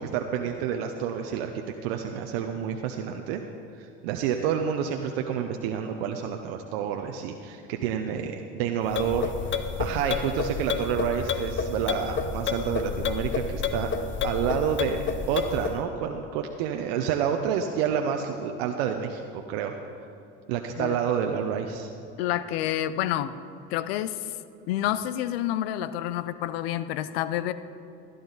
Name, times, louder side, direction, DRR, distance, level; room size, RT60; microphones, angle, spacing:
voice 1, 0.0-3.4 3.8-13.9 14.2-19.7 20.5-21.9, right 8 dB, 80° right, 4 dB, 0.8 m, -29 dB
sound 1, 8.9-15.8, left 6 dB, 40° left, 0.9 m, -30 dB
voice 2, 22.2-23.4 23.7-24.2 24.7-27.5, left 12 dB, 85° left, 14 dB, 0.6 m, -28 dB
15.5 x 11.0 x 4.0 m, 2.6 s
supercardioid pair, 80°, 30 cm